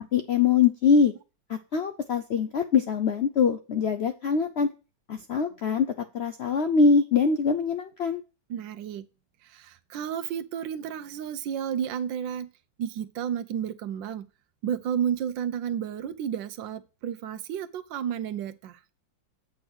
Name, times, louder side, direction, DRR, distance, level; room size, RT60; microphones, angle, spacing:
voice 1, 0.1-1.1 1.5-4.7 5.1-5.9 6.1-8.2, left 5 dB, 85° left, 0.5 m, -23 dB
voice 2, 8.5-9.1 9.4-12.5 12.8-14.3 14.6-18.8, right 9 dB, 85° right, 1.4 m, -32 dB
8.3 x 4.8 x 6.1 m
omnidirectional pair, 2.0 m